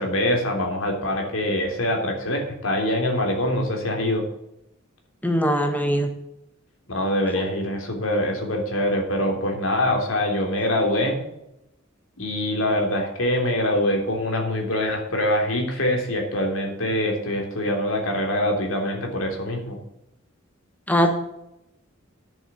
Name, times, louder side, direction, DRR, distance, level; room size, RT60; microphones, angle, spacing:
voice 1, 0.0-4.2 6.9-11.2 12.2-19.8, left 1 dB, 80° left, 2 dB, 3.3 m, -24 dB
voice 2, 5.2-6.1 20.9-21.1, equal, 10° left, 5 dB, 1.3 m, -21 dB
10.5 x 7.3 x 7.2 m, 0.84 s
head